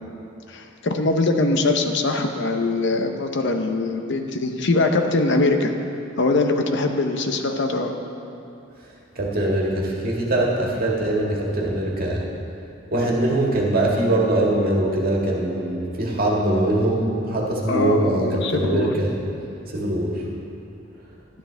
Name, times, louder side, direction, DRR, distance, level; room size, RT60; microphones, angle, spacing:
voice 1, 0.5-5.7 6.2-7.9 17.7-18.9, left 2 dB, 60° left, 5 dB, 0.8 m, -22 dB
voice 2, 9.2-12.2 12.9-19.1 19.7-20.2, right 1 dB, 50° right, -3 dB, 1.8 m, -22 dB
12.5 x 11.5 x 3.4 m, 2.7 s
head